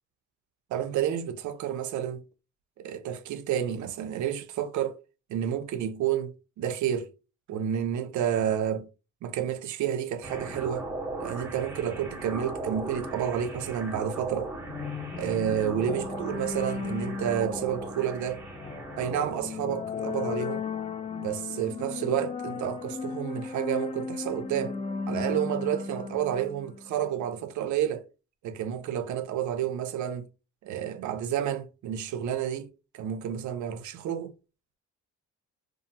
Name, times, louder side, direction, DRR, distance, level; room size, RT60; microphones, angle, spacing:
voice 1, 0.7-2.2 2.8-5.0 5.3-7.1 7.5-8.9 9.2-10.9 11.2-14.5 15.2-18.4 19.0-20.6 21.2-24.8 25.1-28.0 28.4-30.3 30.6-34.3, right 9 dB, 70° right, 0.5 m, -30 dB
sound 1, 10.2-19.4, right 2 dB, 5° right, 0.8 m, -38 dB
sound 2, 14.7-27.2, left 5 dB, 20° left, 0.4 m, -36 dB
2.7 x 2.4 x 2.6 m
cardioid pair, 90°, 30 cm